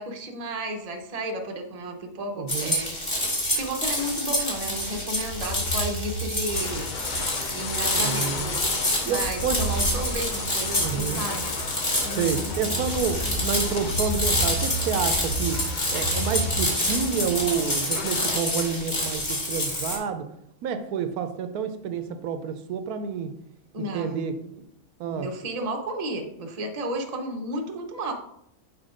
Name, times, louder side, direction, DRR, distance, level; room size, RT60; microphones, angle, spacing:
voice 1, 0.0-3.1 3.6-6.9 7.5-8.6 9.1-11.5 12.0-12.9 23.7-24.2 25.0-28.1, right 1 dB, 30° right, 3 dB, 0.8 m, -33 dB
voice 2, 2.4-2.8 7.9-8.5 9.0-9.6 10.7-11.2 12.2-15.6 15.9-20.3 20.6-23.3 23.9-24.3 25.0-25.3, right 7 dB, 85° right, 9 dB, 1.1 m, -29 dB
sound 1, 2.5-20.0, left 1 dB, 30° left, 1.8 m, -28 dB
sound 2, 4.7-17.5, right 2 dB, 50° left, 1.6 m, -34 dB
sound 3, 6.5-18.4, left 5 dB, 65° left, 0.4 m, -36 dB
6.1 x 4.3 x 5.0 m, 0.75 s
omnidirectional pair, 1.6 m